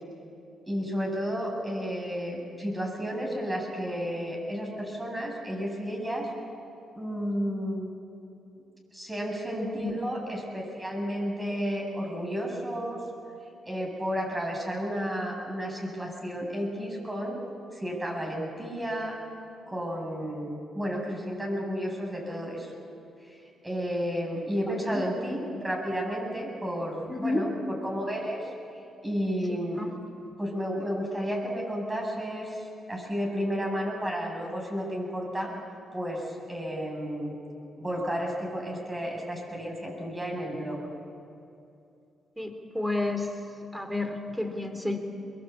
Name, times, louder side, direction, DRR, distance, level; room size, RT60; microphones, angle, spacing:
voice 1, 0.7-6.3 6.9-7.9 8.9-13.0 13.7-17.4 17.7-19.2 19.7-22.7 23.3-23.4 23.6-28.4 29.0-29.8 30.4-32.6 32.9-35.5 35.9-37.3 37.8-40.8, equal, 20° right, -1 dB, 7.9 m, -32 dB
voice 2, 24.7-25.0 27.1-27.5 29.8-29.9 42.4-43.3 43.7-45.0, left 2 dB, ahead, 6 dB, 3.7 m, -31 dB
22.5 x 22.0 x 8.6 m, 2.6 s
supercardioid pair, 65°, 0 cm